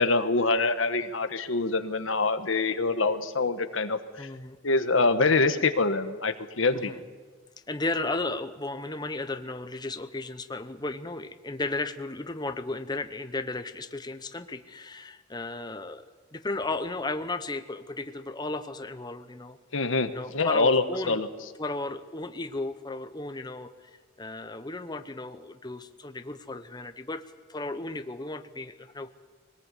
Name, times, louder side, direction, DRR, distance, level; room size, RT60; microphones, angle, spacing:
voice 1, 0.0-4.3 4.6-6.9 19.7-21.3, left 3 dB, 90° left, 9 dB, 1.3 m, -25 dB
voice 2, 4.2-4.6 6.7-7.0 7.7-16.1 16.3-19.6 20.1-21.2 21.6-23.9 24.2-27.2 27.5-29.1, left 2 dB, 20° left, 9 dB, 0.9 m, -34 dB
22.0 x 19.0 x 8.3 m, 1.4 s
head